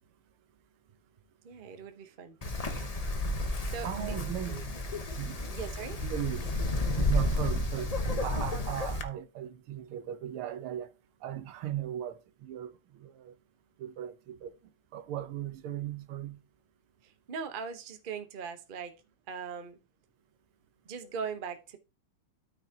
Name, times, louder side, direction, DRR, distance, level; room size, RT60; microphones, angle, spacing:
voice 1, 1.4-2.9 3.4-4.1 4.5-4.6 5.5-6.0 17.0-18.9 19.3-19.8 20.8-21.8, right 6 dB, 40° right, 0.7 m, -40 dB
Wind, 2.4-9.0, left 1 dB, 85° left, 0.3 m, -31 dB
voice 2, 3.8-4.7 5.2-5.4 6.0-6.5 6.9-7.9 8.2-10.9 11.2-12.7 13.0-13.3 13.8-14.5 14.9-16.4, right 11 dB, 80° right, 1.8 m, -37 dB
13.0 x 5.9 x 2.8 m
omnidirectional pair, 2.3 m